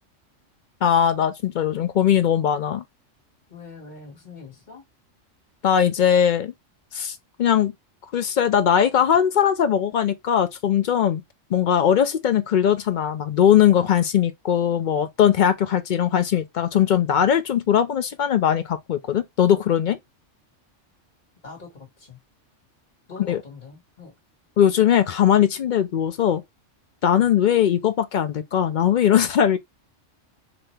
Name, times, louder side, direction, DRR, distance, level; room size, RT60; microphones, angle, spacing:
voice 1, 0.8-2.8 5.6-6.5 6.9-7.7 8.1-11.2 11.5-20.0 23.3-23.4 24.6-26.4 27.0-29.6, left 9 dB, 65° left, 0.5 m, -20 dB
voice 2, 3.5-4.8 21.4-22.2 23.1-24.1 27.2-27.3, left 4 dB, 35° left, 2.0 m, -42 dB
4.0 x 2.8 x 3.2 m
omnidirectional pair, 1.3 m